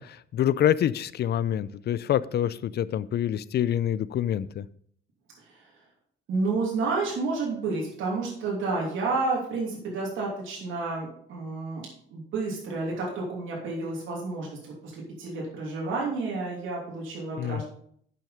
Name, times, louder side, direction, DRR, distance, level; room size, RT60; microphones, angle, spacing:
voice 1, 0.0-4.6 17.4-17.6, left 10 dB, 55° left, 18 dB, 0.5 m, -26 dB
voice 2, 5.4-5.7 6.3-17.6, right 3 dB, 80° right, -3 dB, 2.9 m, -30 dB
8.7 x 6.3 x 5.1 m, 0.63 s
cardioid pair, 90°, 20 cm